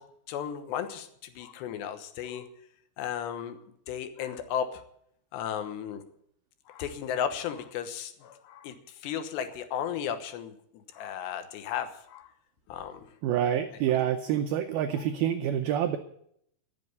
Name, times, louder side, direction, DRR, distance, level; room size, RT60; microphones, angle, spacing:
voice 1, 0.0-2.5 3.0-3.6 3.9-4.8 5.3-6.0 6.7-8.7 9.0-10.5 10.9-12.3 12.7-13.1, left 9 dB, 75° left, 9 dB, 3.2 m, -34 dB
voice 2, 13.2-16.0, right 10 dB, 90° right, 6 dB, 2.1 m, -27 dB
14.0 x 7.7 x 9.5 m, 0.71 s
omnidirectional pair, 5.3 m